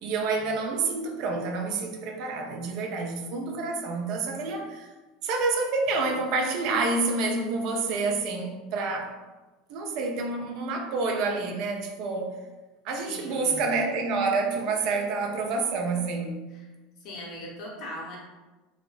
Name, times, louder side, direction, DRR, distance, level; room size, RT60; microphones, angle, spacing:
voice 1, 0.0-4.9 5.2-9.1 9.7-12.4 12.8-16.5, right 3 dB, 60° right, 2 dB, 0.4 m, -28 dB
voice 2, 13.0-13.6 16.5-16.7 17.0-18.2, left 1 dB, 55° left, -3 dB, 0.7 m, -40 dB
2.6 x 2.0 x 2.3 m, 1.2 s
hypercardioid pair, 80°, 0 cm